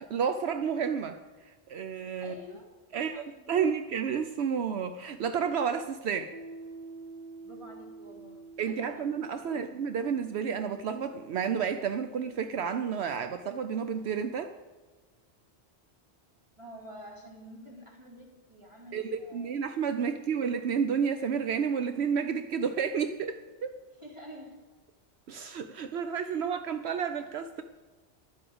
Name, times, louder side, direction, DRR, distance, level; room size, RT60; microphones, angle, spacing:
voice 1, 0.0-2.3 2.9-6.3 8.6-14.5 18.9-23.7 25.3-27.6, right 7 dB, 75° right, 8 dB, 0.9 m, -31 dB
voice 2, 2.2-3.7 7.4-9.1 9.4-9.7 16.6-19.5 20.3-20.6 24.0-24.6 26.2-26.4, equal, 25° right, -2 dB, 3.0 m, -49 dB
Piano, 6.3-13.6, right 3 dB, 45° right, 0.9 m, -49 dB
11.5 x 7.8 x 7.9 m, 1.3 s
omnidirectional pair, 1.1 m